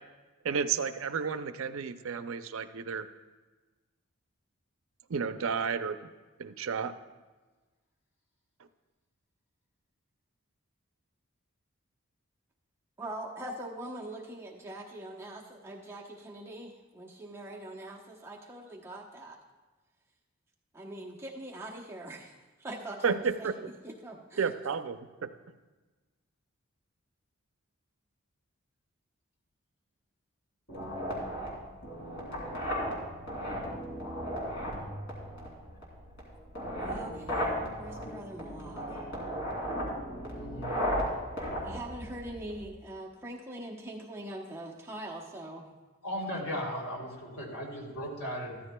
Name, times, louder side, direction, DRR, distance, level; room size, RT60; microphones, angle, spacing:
voice 1, 0.4-3.1 5.1-6.1 6.4-6.9 23.0-23.5 24.4-25.3, right 6 dB, 80° right, 11 dB, 0.5 m, -32 dB
voice 2, 13.0-19.4 20.7-22.3 22.6-23.5 23.8-24.4 36.8-37.5 37.8-38.9 41.6-45.7, right 1 dB, 10° right, -2 dB, 0.9 m, -42 dB
sound 1, 30.7-42.7, equal, 65° left, 3.0 m, -35 dB
voice 3, 40.3-40.8 46.0-48.6, equal, 85° left, -3 dB, 3.1 m, -37 dB
14.0 x 13.0 x 2.3 m, 1.3 s
head